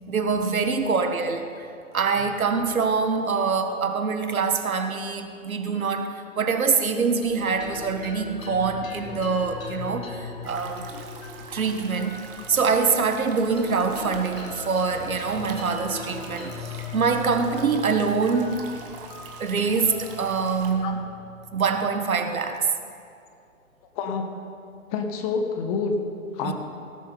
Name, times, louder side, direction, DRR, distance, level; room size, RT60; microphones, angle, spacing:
voice 1, 0.1-1.5 1.9-11.0 11.5-12.2 12.5-18.7 19.4-21.1 21.5-22.7 26.4-26.5, right 5 dB, 80° right, 7 dB, 1.4 m, -25 dB
sound 1, 7.2-21.9, left 5 dB, 75° left, 2.8 m, -40 dB
sound 2, 10.4-20.7, right 5 dB, 40° right, 1.6 m, -43 dB
voice 2, 24.0-24.3 24.9-26.0 26.3-26.5, left 5 dB, 25° left, 5 dB, 1.1 m, -27 dB
17.5 x 7.1 x 5.4 m, 2.5 s
hypercardioid pair, 135°, 41 cm